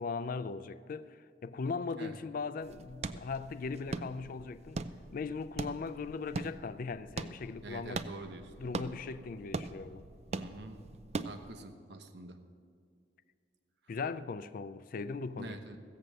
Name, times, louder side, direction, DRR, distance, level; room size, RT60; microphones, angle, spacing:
voice 1, 0.0-4.8 5.1-8.0 8.6-10.0 13.9-15.6, left 4 dB, 50° left, 0.4 m, -39 dB
sound 1, 2.6-11.6, right 3 dB, 35° right, 0.4 m, -42 dB
voice 2, 7.6-8.5 10.3-10.8 11.2-12.4 15.4-15.8, right 2 dB, 65° right, 0.9 m, -46 dB
15.5 x 7.6 x 6.7 m
head